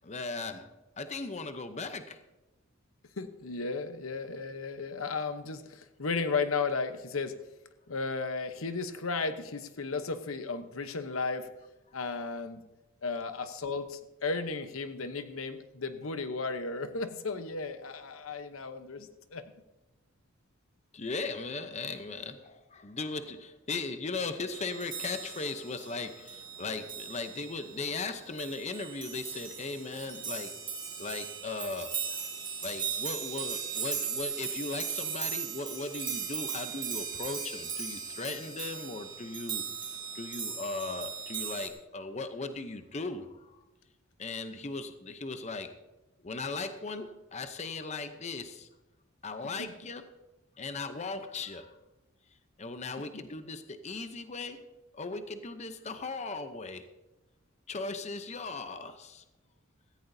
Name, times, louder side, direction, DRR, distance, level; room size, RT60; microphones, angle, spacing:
voice 1, 0.0-0.7 1.0-2.2 20.9-30.5 31.0-31.9 32.2-32.3 32.6-43.6 44.2-45.7 46.2-48.7 49.2-50.1 50.6-51.8 52.6-54.6 54.9-56.9 57.7-59.2, left 3 dB, 35° left, 9 dB, 0.7 m, -38 dB
voice 2, 3.2-7.4 7.9-11.5 11.9-12.6 13.0-19.5 49.6-49.7 53.1-53.2, left 4 dB, 85° left, 9 dB, 0.9 m, -34 dB
sound 1, 24.5-41.7, right 7 dB, 25° right, 2.3 m, -38 dB
16.5 x 15.0 x 2.7 m, 1.0 s
head